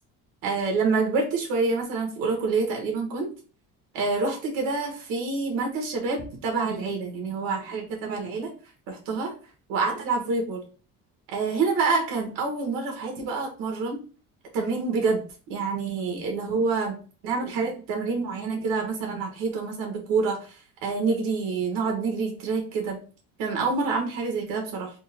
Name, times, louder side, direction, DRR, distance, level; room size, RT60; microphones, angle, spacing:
voice 1, 0.4-3.3 3.9-8.5 8.9-9.3 9.7-10.6 11.3-14.0 14.5-15.2 15.5-16.9 17.2-23.0 23.4-24.9, right 4 dB, 85° right, 1 dB, 1.1 m, -27 dB
3.6 x 2.0 x 4.0 m, 0.38 s
cardioid pair, 165°, 33 cm